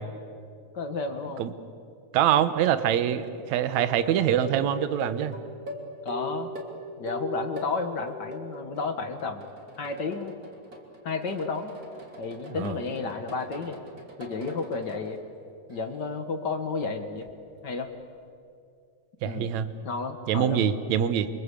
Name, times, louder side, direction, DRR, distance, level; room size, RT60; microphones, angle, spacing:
voice 1, 0.7-1.4 6.0-6.5 7.0-9.4 9.8-10.3 11.0-11.7 12.2-13.8 14.2-15.2 15.7-17.3 17.6-17.9 19.2-19.5 19.8-20.6, left 4 dB, 45° left, 6 dB, 1.6 m, -32 dB
voice 2, 2.1-5.4 12.5-12.7 19.2-19.7 20.3-21.3, right 10 dB, 70° right, 12 dB, 2.3 m, -24 dB
sound 1, 3.2-3.3 3.7-7.7 8.1-8.9 9.2-15.1 15.7-16.1 17.2-17.3, equal, 30° right, 3.1 m, -41 dB
28.5 x 24.5 x 8.3 m, 2.5 s
omnidirectional pair, 3.5 m